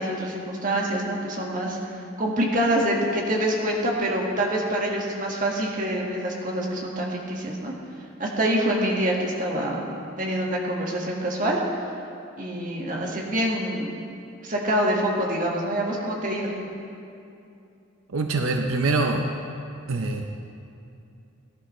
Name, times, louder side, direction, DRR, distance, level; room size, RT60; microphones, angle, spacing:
voice 1, 0.0-1.8 2.2-7.7 8.2-9.9 10.2-11.6 12.4-14.0 14.4-16.5, right 1 dB, 40° right, -2 dB, 1.7 m, -26 dB
voice 2, 18.1-19.3 19.9-20.3, right 3 dB, 85° right, 4 dB, 0.7 m, -24 dB
18.0 x 11.5 x 3.1 m, 2.6 s
head